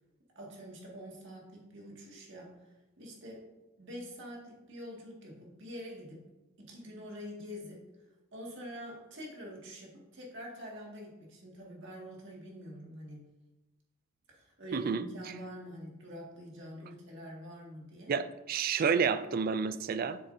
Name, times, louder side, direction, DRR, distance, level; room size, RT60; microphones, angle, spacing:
voice 1, 0.4-3.5 3.8-6.2 6.6-7.8 8.3-13.2 14.3-18.1, equal, 60° right, -2 dB, 1.9 m, -46 dB
voice 2, 14.7-15.1 18.1-20.2, right 6 dB, 45° right, 12 dB, 0.3 m, -30 dB
7.6 x 6.6 x 2.7 m, 1.0 s
head